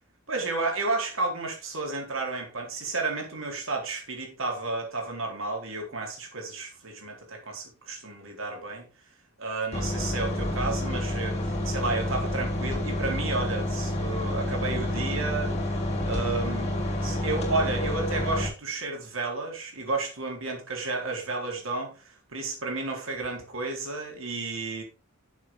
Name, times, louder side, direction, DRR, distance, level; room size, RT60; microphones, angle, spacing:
voice 1, 0.3-8.9 9.4-15.5 16.0-16.7 17.0-24.8, right 3 dB, 70° right, 1 dB, 4.0 m, -32 dB
sound 1, 9.7-18.5, left 1 dB, 30° left, 3.4 m, -29 dB
11.5 x 7.3 x 3.7 m, 0.34 s
head